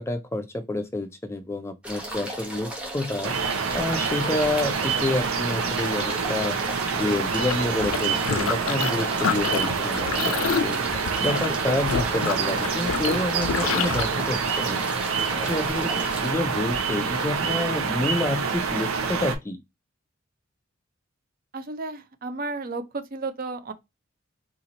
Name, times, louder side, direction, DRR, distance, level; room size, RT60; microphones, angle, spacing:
voice 1, 0.0-10.3 10.6-15.9 16.2-19.6, left 1 dB, 15° left, 0.3 m, -29 dB
sound 1, 1.8-16.3, right 1 dB, 5° right, 0.9 m, -36 dB
sound 2, 3.2-19.4, right 5 dB, 90° right, 0.7 m, -27 dB
sound 3, 7.4-8.9 9.2-14.0, left 7 dB, 90° left, 0.4 m, -28 dB
voice 2, 21.5-23.7, right 3 dB, 45° right, 0.5 m, -33 dB
2.8 x 2.4 x 3.9 m
head